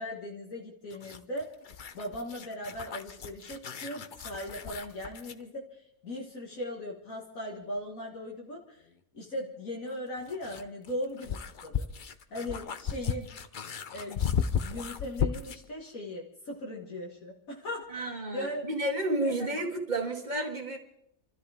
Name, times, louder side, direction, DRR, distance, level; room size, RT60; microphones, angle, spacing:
voice 1, 0.0-1.5 1.9-8.8 9.1-11.9 12.3-13.3 13.9-14.3 14.6-18.7 19.2-19.3, left 1 dB, 70° left, 2.1 m, -38 dB
sound 1, 0.9-5.4 7.8-7.9 9.9-15.7, left 7 dB, 45° left, 0.7 m, -35 dB
voice 2, 17.9-20.8, right 1 dB, 30° right, 2.1 m, -31 dB
28.0 x 13.5 x 3.5 m
omnidirectional pair, 1.5 m